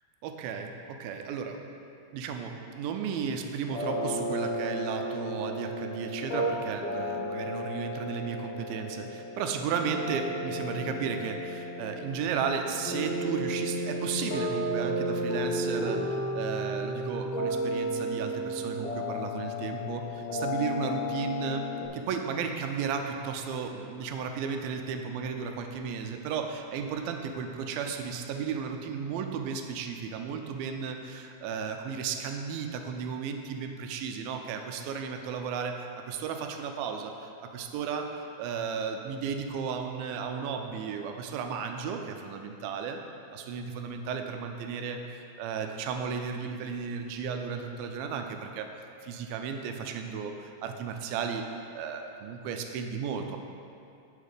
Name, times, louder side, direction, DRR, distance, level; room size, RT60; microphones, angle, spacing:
voice 1, 0.2-1.6 2.1-43.0 43.3-48.7 49.0-51.4 51.7-53.4, right 6 dB, 85° right, 5 dB, 2.4 m, -34 dB
sound 1, 3.7-21.9, equal, 55° left, 1.7 m, -33 dB
8.3 x 6.9 x 5.0 m, 2.7 s
omnidirectional pair, 4.1 m